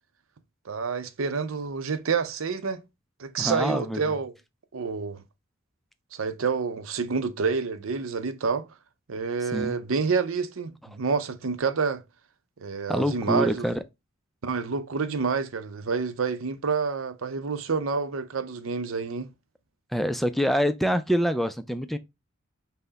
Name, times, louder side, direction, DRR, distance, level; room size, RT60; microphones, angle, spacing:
voice 1, 0.7-2.8 3.2-4.3 4.7-5.2 6.1-8.7 9.1-12.0 12.6-13.7 14.4-19.3, right 5 dB, 90° right, 0.6 m, -28 dB
voice 2, 3.4-4.0 9.5-9.8 12.9-13.8 19.9-22.0, equal, ahead, 0.3 m, -25 dB
5.6 x 2.1 x 3.9 m
head